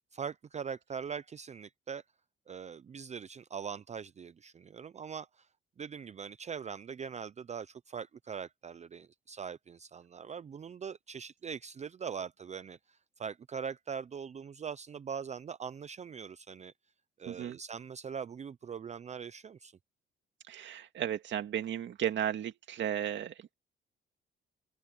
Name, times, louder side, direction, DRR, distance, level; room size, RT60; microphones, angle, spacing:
voice 1, 0.1-2.0 2.5-5.5 5.8-16.7 17.2-19.8, right 7 dB, 35° right, 0.6 m, -42 dB
voice 2, 17.3-17.6 20.5-23.5, right 10 dB, 65° right, 2.2 m, -34 dB
open air
cardioid pair, 90°, 20 cm